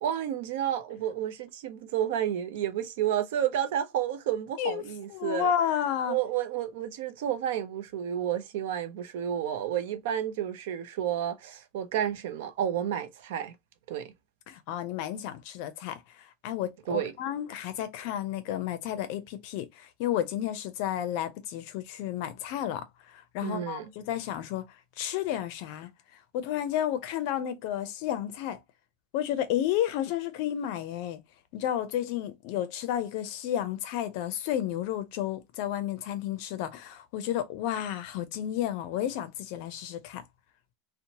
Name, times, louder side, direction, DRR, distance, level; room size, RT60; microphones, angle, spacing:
voice 1, 0.0-5.5 6.1-13.5 13.9-14.1 16.9-17.1 23.4-23.9, right 10 dB, 70° right, 0.5 m, -31 dB
voice 2, 5.1-6.2 14.5-24.7 25.0-25.9 26.3-28.6 29.1-31.2 31.5-40.2, left 11 dB, 50° left, 0.5 m, -32 dB
2.7 x 2.0 x 2.8 m
supercardioid pair, 175°, 0 cm